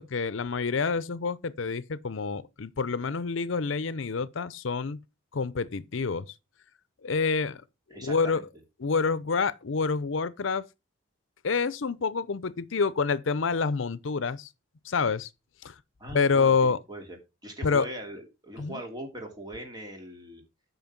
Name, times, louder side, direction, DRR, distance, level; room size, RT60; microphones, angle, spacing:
voice 1, 0.0-5.0 5.3-6.3 7.0-7.6 8.0-8.4 8.8-10.6 11.4-14.5 14.8-15.3 15.6-15.7 16.1-16.8 17.6-17.9 18.6-18.8, left 5 dB, 75° left, 0.6 m, -27 dB
voice 2, 7.9-8.4 16.0-20.4, right 1 dB, 20° right, 2.9 m, -41 dB
9.1 x 5.7 x 5.8 m
head